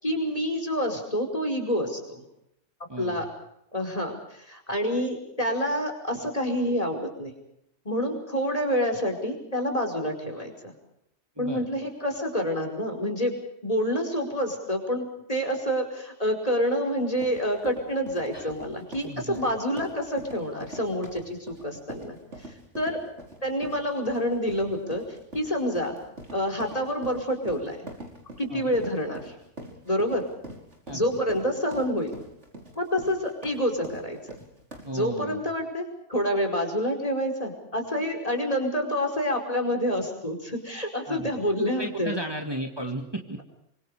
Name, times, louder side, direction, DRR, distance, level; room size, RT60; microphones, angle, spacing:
voice 1, 0.0-2.2 3.0-3.2 3.7-7.3 7.8-10.7 11.4-13.3 13.6-22.2 22.7-23.0 23.4-25.0 25.3-25.9 26.3-27.9 28.4-29.3 29.8-30.2 30.9-32.1 32.7-34.4 34.9-35.8 36.1-42.2, equal, 30° left, 3 dB, 5.2 m, -28 dB
voice 2, 2.9-3.3 11.4-11.7 18.3-18.5 19.0-19.4 28.5-28.7 30.9-31.1 34.8-35.5 41.1-41.3 41.8-43.4, right 1 dB, 20° right, 3 dB, 2.2 m, -34 dB
sound 1, 17.0-35.1, right 1 dB, 70° right, 5.4 m, -44 dB
27.0 x 25.0 x 5.0 m, 0.80 s
omnidirectional pair, 1.2 m